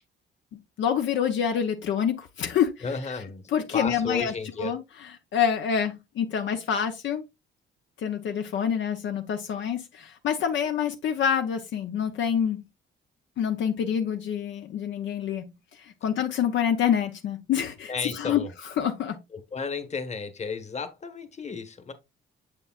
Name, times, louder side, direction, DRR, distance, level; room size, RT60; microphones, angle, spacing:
voice 1, 0.8-2.8 3.5-4.3 4.6-7.2 8.0-12.6 13.4-18.4 18.8-19.2, left 8 dB, 70° left, 0.7 m, -27 dB
voice 2, 2.8-3.4 3.7-4.7 17.9-18.5 19.3-21.9, left 5 dB, 35° left, 1.2 m, -33 dB
6.9 x 6.8 x 2.4 m
cardioid pair, 90°, 20 cm